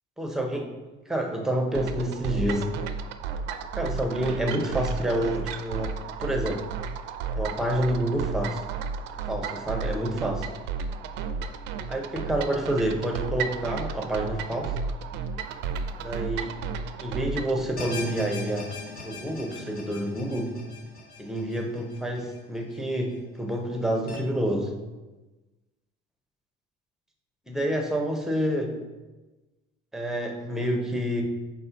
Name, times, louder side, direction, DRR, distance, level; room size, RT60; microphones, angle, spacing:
voice 1, 0.2-0.7 1.1-2.7 3.8-6.6 7.4-8.6 9.3-10.5 11.9-14.7 16.0-16.6 17.0-20.6 21.2-24.7 27.5-28.8 29.9-31.2, right 1 dB, ahead, 2 dB, 0.7 m, -28 dB
sound 1, 1.7-17.6, right 5 dB, 65° right, 0.5 m, -33 dB
sound 2, 17.8-23.0 23.4-23.5 24.1-24.2, left 3 dB, 50° left, 1.3 m, -40 dB
4.3 x 4.2 x 5.6 m, 1.2 s
cardioid pair, 160°, 19 cm